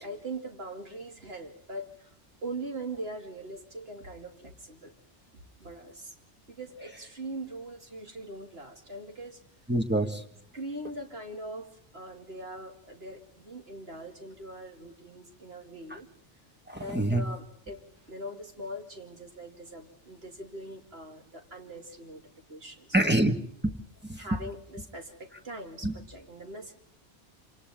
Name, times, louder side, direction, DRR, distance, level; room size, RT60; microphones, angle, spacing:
voice 1, 0.0-2.1 2.4-4.9 5.6-6.2 6.5-9.4 10.5-16.1 16.7-22.2 22.5-23.1 24.2-26.7, right 1 dB, 60° right, 3 dB, 2.9 m, -41 dB
voice 2, 9.7-10.2 16.7-17.2 22.9-23.7 24.1-24.2 25.8-25.9, right 1 dB, 10° right, 4 dB, 1.7 m, -26 dB
27.5 x 26.5 x 3.7 m, 0.65 s
omnidirectional pair, 1.2 m